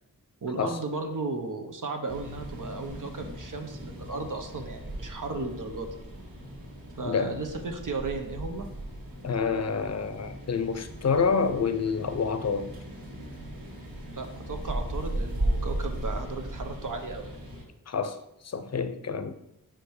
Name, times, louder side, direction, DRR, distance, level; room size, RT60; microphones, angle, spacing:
voice 1, 0.4-5.9 7.0-8.7 14.1-17.3, right 3 dB, 55° right, 1.0 m, -35 dB
sound 1, 2.1-17.6, right 1 dB, 75° right, 2.1 m, -37 dB
voice 2, 7.0-7.3 9.2-12.7 17.9-18.2 18.4-19.3, left 5 dB, 45° left, 0.6 m, -28 dB
5.9 x 5.0 x 4.8 m
wide cardioid pair, 85°, 37 cm